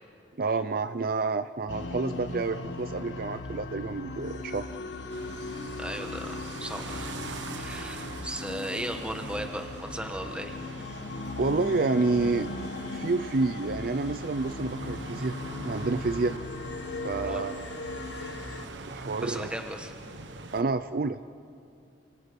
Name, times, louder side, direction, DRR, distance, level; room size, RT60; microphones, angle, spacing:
voice 1, 0.4-4.7 11.4-12.5 12.9-15.4 15.6-16.4 17.0-17.7 18.8-19.5 20.5-21.2, right 3 dB, 55° right, 11 dB, 0.5 m, -29 dB
sound 1, 1.7-18.7, left 3 dB, 80° left, 1.2 m, -38 dB
sound 2, 5.1-20.6, right 3 dB, 85° right, 1.3 m, -43 dB
voice 2, 5.8-7.1 7.5-10.6 17.2-17.5 19.2-19.9, right 1 dB, 5° right, 5 dB, 1.5 m, -36 dB
28.0 x 26.0 x 5.3 m, 2.6 s
head